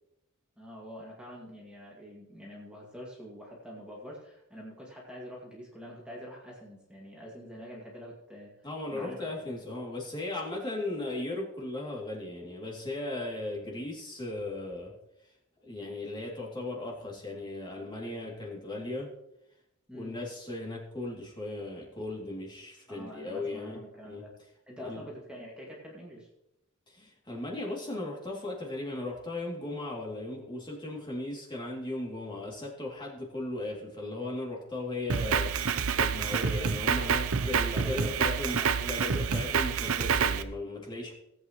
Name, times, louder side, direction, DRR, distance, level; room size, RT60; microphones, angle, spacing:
voice 1, 0.6-8.5 8.9-9.3 19.9-20.2 22.9-24.3 24.7-26.3 37.3-39.1, equal, 5° right, -4 dB, 2.2 m, -46 dB
voice 2, 8.6-14.9 15.6-19.1 19.9-24.2 24.8-25.0 26.9-41.1, left 2 dB, 20° left, -3 dB, 2.7 m, -37 dB
Drum kit, 35.1-40.4, right 6 dB, 75° right, 0.7 m, -28 dB
17.5 x 8.6 x 3.1 m, 0.84 s
head